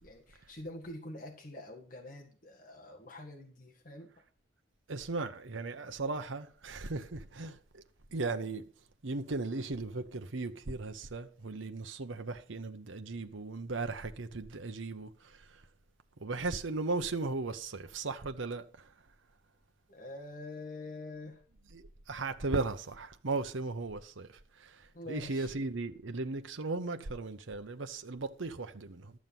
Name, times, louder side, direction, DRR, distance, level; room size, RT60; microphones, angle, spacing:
voice 1, 0.0-4.2 19.9-21.4 24.9-25.6, left 1 dB, 45° left, 1.8 m, -46 dB
voice 2, 4.9-7.8 8.1-8.6 9.0-15.1 16.2-18.6 21.7-24.3 24.6-24.7 25.1-29.1, right 3 dB, 85° right, 0.9 m, -36 dB
12.5 x 7.3 x 5.9 m
head